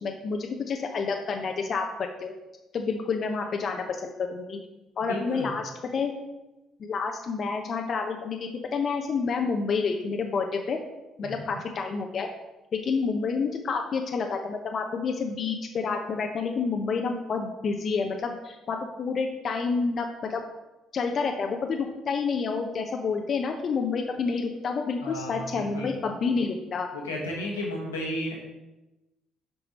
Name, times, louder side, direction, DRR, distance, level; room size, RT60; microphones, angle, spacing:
voice 1, 0.0-1.9 2.2-2.3 2.7-4.6 5.0-5.6 5.9-6.1 6.8-10.8 11.2-12.3 12.8-20.4 20.9-26.9, left 5 dB, 50° left, 3 dB, 0.7 m, -29 dB
voice 2, 5.0-5.5 11.2-11.6 25.0-26.0 26.9-28.3, left 1 dB, 90° left, -3 dB, 1.3 m, -33 dB
7.0 x 4.7 x 4.1 m, 1.0 s
hypercardioid pair, 50°, 0 cm